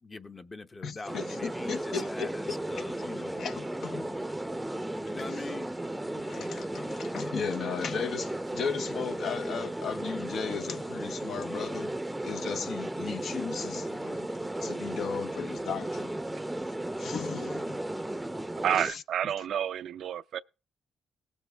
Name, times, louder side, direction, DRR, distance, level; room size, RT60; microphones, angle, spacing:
voice 1, 0.0-3.5 5.1-5.8, left 3 dB, 25° left, 0.8 m, -42 dB
voice 2, 0.8-2.8 3.4-4.2 6.1-16.1 17.0-17.8 18.8-19.0, left 6 dB, 60° left, 0.7 m, -36 dB
sound 1, 1.1-18.9, right 1 dB, 10° right, 0.6 m, -35 dB
voice 3, 18.6-20.4, right 9 dB, 70° right, 0.4 m, -30 dB
19.0 x 7.3 x 3.4 m
cardioid pair, 90°, 0 cm